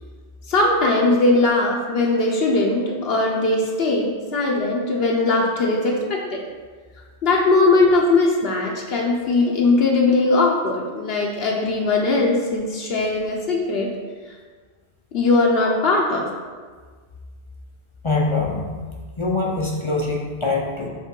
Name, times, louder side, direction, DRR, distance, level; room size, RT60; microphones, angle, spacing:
voice 1, 0.5-6.4 7.2-13.9 15.1-16.3, left 3 dB, 65° left, -1 dB, 0.9 m, -20 dB
voice 2, 18.0-18.7 19.2-20.9, left 3 dB, 35° left, -2 dB, 0.5 m, -23 dB
5.1 x 3.5 x 5.2 m, 1.5 s
omnidirectional pair, 1.1 m